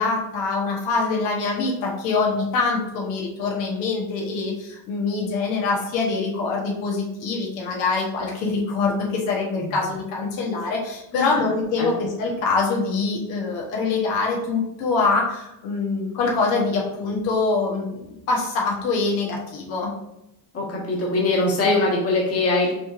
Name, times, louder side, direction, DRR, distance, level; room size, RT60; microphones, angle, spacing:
voice 1, 0.0-19.9, left 4 dB, 70° left, -2 dB, 1.2 m, -24 dB
voice 2, 20.5-22.7, left 2 dB, 30° left, -3 dB, 1.4 m, -22 dB
5.8 x 3.2 x 2.5 m, 0.86 s
cardioid pair, 135°, 45 cm